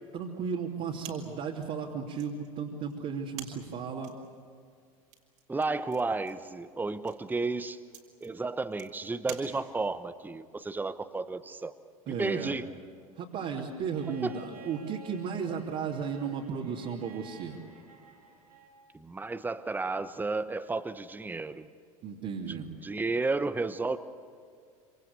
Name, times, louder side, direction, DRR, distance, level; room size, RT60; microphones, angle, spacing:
voice 1, 0.1-4.2 12.1-12.5 13.2-17.6 22.0-22.7, right 6 dB, 45° right, -2 dB, 3.0 m, -35 dB
sound 1, 1.0-10.0, right 8 dB, 60° right, 4.0 m, -50 dB
voice 2, 5.5-7.8 8.2-11.7 12.1-12.6 14.2-14.4 18.9-21.7 22.8-24.0, right 3 dB, 10° right, 11 dB, 1.1 m, -32 dB
Bowed string instrument, 13.9-18.9 20.4-20.5, right 2 dB, 90° right, 2.8 m, -52 dB
27.0 x 26.0 x 6.8 m, 2.2 s
figure-of-eight pair, 80°, 18 cm